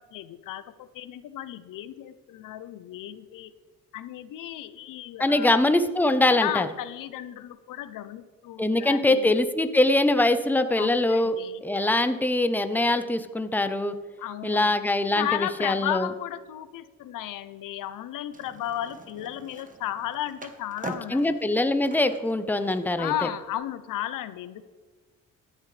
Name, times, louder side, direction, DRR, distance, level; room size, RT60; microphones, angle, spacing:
voice 1, 0.0-3.5 3.9-5.6 6.4-9.3 10.8-11.6 14.2-14.7 15.1-21.4 23.0-24.6, left 12 dB, 85° left, 13 dB, 0.7 m, -34 dB
voice 2, 5.2-6.7 8.6-11.4 11.6-13.9 14.4-16.1 20.8-23.1, left 2 dB, 5° left, 10 dB, 0.8 m, -23 dB
Skateboard, 18.3-23.5, right 3 dB, 25° right, 1.3 m, -45 dB
15.0 x 10.5 x 3.3 m, 1.4 s
cardioid pair, 100°, 31 cm